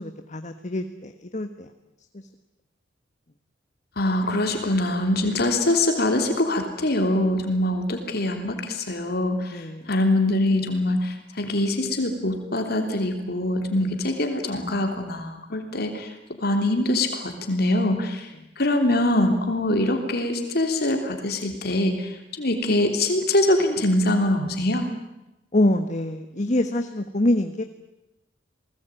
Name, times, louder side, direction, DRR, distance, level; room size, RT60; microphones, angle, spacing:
voice 1, 0.0-1.7 2.1-2.2 9.5-9.8 13.8-13.9 25.5-27.6, left 1 dB, 40° left, 7 dB, 1.4 m, -25 dB
voice 2, 4.0-16.1 16.4-24.9, left 1 dB, 55° left, 5 dB, 3.3 m, -23 dB
29.5 x 19.5 x 9.1 m, 0.94 s
head